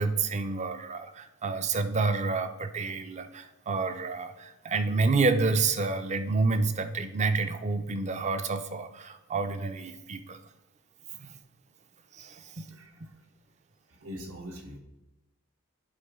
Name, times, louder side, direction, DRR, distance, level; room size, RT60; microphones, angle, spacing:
voice 1, 0.0-10.4 11.2-11.4 12.1-12.7, right 3 dB, 30° right, 9 dB, 0.5 m, -29 dB
voice 2, 13.9-14.8, equal, 70° right, 2 dB, 1.3 m, -42 dB
10.5 x 4.3 x 3.6 m, 0.97 s
head